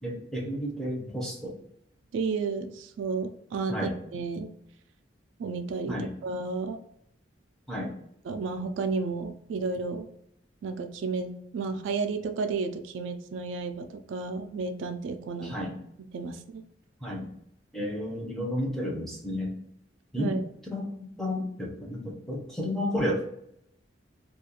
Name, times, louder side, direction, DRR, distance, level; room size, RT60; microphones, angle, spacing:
voice 1, 0.0-1.6 3.7-3.9 5.9-6.1 7.7-7.9 15.4-15.8 17.0-17.3 17.7-19.5 20.1-20.4 20.6-23.3, left 1 dB, ahead, -2 dB, 0.6 m, -32 dB
voice 2, 2.1-4.5 5.4-5.9 6.2-6.8 8.2-10.1 10.6-15.6 16.1-16.6 20.2-20.5, right 4 dB, 80° right, 7 dB, 0.3 m, -32 dB
2.4 x 2.2 x 2.8 m, 0.75 s
head